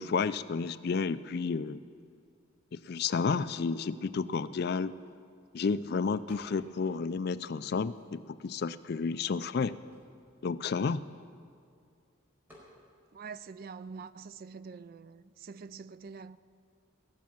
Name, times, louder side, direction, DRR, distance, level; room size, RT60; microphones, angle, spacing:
voice 1, 0.0-1.8 2.7-4.9 5.5-9.8 10.4-11.0, left 5 dB, 50° left, 0.4 m, -31 dB
sound 1, 6.3-6.9 7.2-8.5 9.1-9.2 9.4-11.6 12.5-12.8, left 1 dB, 10° right, 4.7 m, -59 dB
voice 2, 13.1-16.4, right 5 dB, 45° right, 0.3 m, -45 dB
19.5 x 7.4 x 8.7 m
head